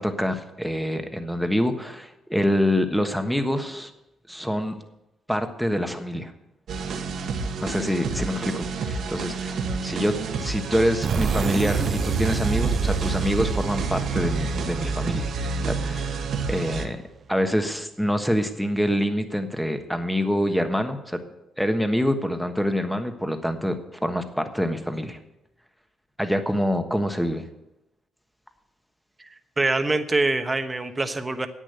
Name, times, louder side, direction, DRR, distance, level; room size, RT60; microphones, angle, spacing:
voice 1, 0.0-3.9 4.3-4.8 5.3-6.3 7.6-15.3 15.6-16.2 16.5-17.0 17.3-21.2 21.6-25.2 26.2-27.4, equal, ahead, 7 dB, 1.4 m, -26 dB
sound 1, 6.7-16.9, right 4 dB, 65° right, 1.4 m, -29 dB
sound 2, 11.0-16.5, right 6 dB, 45° right, 0.4 m, -29 dB
voice 2, 29.2-31.5, right 2 dB, 20° right, 8 dB, 1.1 m, -25 dB
10.5 x 8.6 x 8.0 m, 0.92 s
cardioid pair, 90°, 0 cm